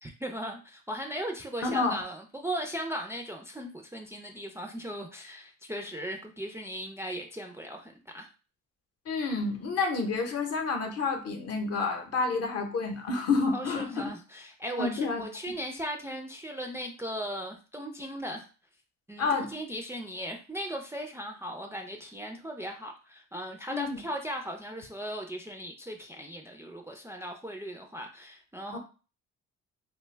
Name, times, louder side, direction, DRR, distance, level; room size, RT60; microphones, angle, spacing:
voice 1, 0.0-8.3 13.5-18.5 19.1-28.8, equal, 10° right, 2 dB, 0.3 m, -38 dB
voice 2, 1.6-2.0 9.1-14.1 14.8-15.2 19.2-19.5 23.7-24.0 28.7-28.8, left 4 dB, 55° left, 4 dB, 0.8 m, -29 dB
2.3 x 2.2 x 3.2 m, 0.35 s
cardioid pair, 90°, 30 cm